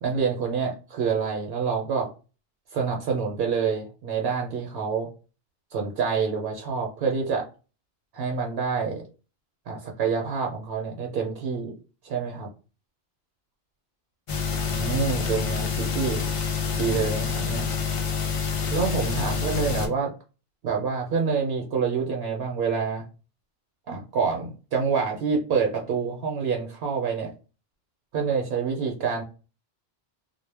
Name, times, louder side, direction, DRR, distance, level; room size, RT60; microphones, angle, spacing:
voice 1, 0.0-2.1 2.7-5.1 5.7-7.5 8.1-9.0 9.7-11.7 12.0-12.5 14.7-16.2 16.7-17.8 18.7-20.1 20.6-23.0 23.9-27.3 28.1-29.2, right 5 dB, 75° right, 1 dB, 0.8 m, -27 dB
sound 1, 14.3-19.9, left 6 dB, 50° left, 0.4 m, -27 dB
2.0 x 2.0 x 3.2 m, 0.33 s
omnidirectional pair, 1.1 m